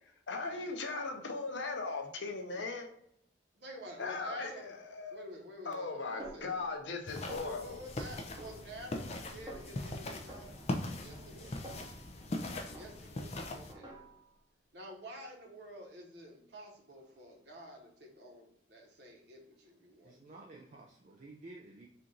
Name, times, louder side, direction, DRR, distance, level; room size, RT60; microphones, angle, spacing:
voice 1, 0.3-2.9 4.0-5.2 5.6-7.8, left 3 dB, 80° left, 3 dB, 0.8 m, -38 dB
voice 2, 3.6-4.7 5.1-6.6 7.4-10.6 11.0-11.5 12.7-13.3 13.5-13.9 14.7-20.4, equal, 65° right, 0 dB, 1.2 m, -49 dB
Snare drum, 6.2-7.0 7.3-7.9 8.4-9.2 9.5-9.9 10.3-12.4 12.7-13.3 13.7-14.4, right 1 dB, 25° right, 0.8 m, -51 dB
sound 1, 7.1-13.7, left 1 dB, 35° left, 0.5 m, -40 dB
voice 3, 11.1-11.9 20.0-21.9, right 2 dB, 40° right, 0 dB, 0.4 m, -53 dB
4.4 x 2.5 x 3.8 m, 0.74 s
head